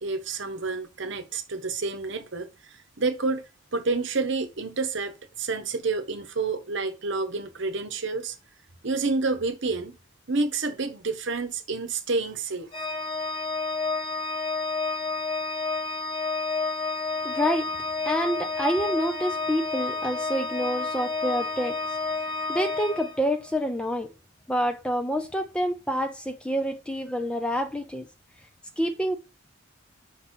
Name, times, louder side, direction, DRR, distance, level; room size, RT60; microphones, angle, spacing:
voice 1, 0.0-3.4 3.7-8.3 8.8-10.0 10.3-12.7, right 3 dB, 55° right, 1.0 m, -29 dB
Organ, 12.7-23.6, left 3 dB, 25° left, 1.0 m, -30 dB
voice 2, 17.2-17.7 18.1-21.8 22.5-24.1 24.5-28.1 28.8-29.2, equal, 5° left, 0.4 m, -27 dB
5.3 x 4.2 x 4.3 m
head